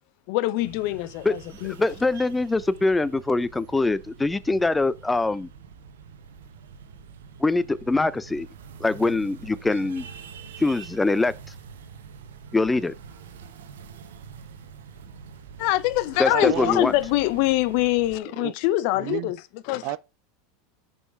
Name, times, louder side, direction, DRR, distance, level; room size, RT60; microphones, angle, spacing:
voice 1, 0.3-1.7 15.6-20.0, left 16 dB, 60° left, 0.6 m, -24 dB
sound 1, 0.6-18.2, right 6 dB, 80° right, 1.0 m, -45 dB
voice 2, 1.8-5.5 7.4-8.5 8.8-10.0 10.6-11.3 12.5-12.9 16.2-16.9, left 3 dB, 10° left, 0.5 m, -23 dB
voice 3, 16.3-16.8 18.4-18.5 19.0-19.3 19.8-20.0, right 20 dB, 60° right, 0.4 m, -30 dB
5.6 x 5.4 x 4.7 m
hypercardioid pair, 95°, 0 cm